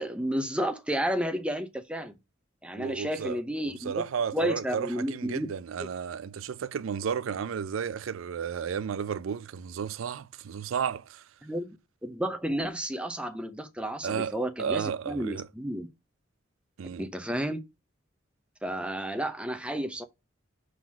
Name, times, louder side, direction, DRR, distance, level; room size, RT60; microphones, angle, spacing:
voice 1, 0.0-2.1 2.6-3.9 4.3-5.5 11.4-11.8 12.0-15.9 17.0-17.6 18.6-20.0, equal, 5° right, 0.7 m, -31 dB
voice 2, 2.8-11.2 14.0-15.5 16.8-17.1, right 7 dB, 90° right, 0.4 m, -33 dB
5.8 x 4.0 x 6.1 m
head